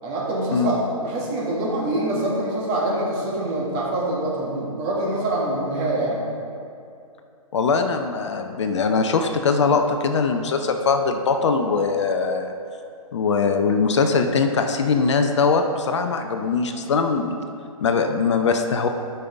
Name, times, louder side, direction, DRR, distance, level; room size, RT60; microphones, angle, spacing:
voice 1, 0.0-6.3, right 1 dB, 25° right, -4 dB, 1.6 m, -25 dB
voice 2, 7.5-12.5 13.1-17.4 17.8-18.9, left 4 dB, 50° left, 6 dB, 0.6 m, -21 dB
12.0 x 5.5 x 3.4 m, 2.5 s
figure-of-eight pair, 130°, 19 cm